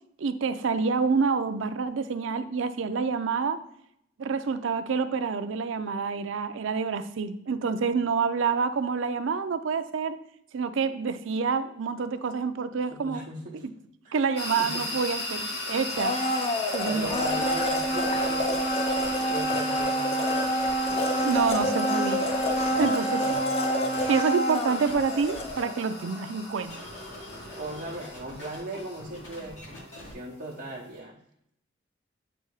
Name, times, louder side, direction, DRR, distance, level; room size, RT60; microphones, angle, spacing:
voice 1, 0.2-3.6 4.2-10.2 10.5-13.2 14.1-16.2 16.7-17.1 17.4-17.5 21.2-22.4 22.7-23.2 24.1-26.8, right 5 dB, 75° right, 10 dB, 0.4 m, -27 dB
voice 2, 12.9-13.6 14.0-14.1 14.4-14.8 16.8-20.2 23.1-24.2 27.6-31.2, right 1 dB, 45° right, -5 dB, 1.0 m, -39 dB
sound 1, 14.4-31.0, left 2 dB, 50° left, 1.1 m, -38 dB
sound 2, 15.9-16.1 16.8-19.8 20.2-21.8 22.1-22.9 23.3-23.4 23.9-24.2 24.7-25.6 26.6-30.1, left 1 dB, 80° left, 2.2 m, -44 dB
Domestic sounds home sounds, 15.9-25.9 26.2-26.3, equal, 30° left, 0.4 m, -27 dB
7.9 x 2.8 x 4.7 m, 0.74 s
head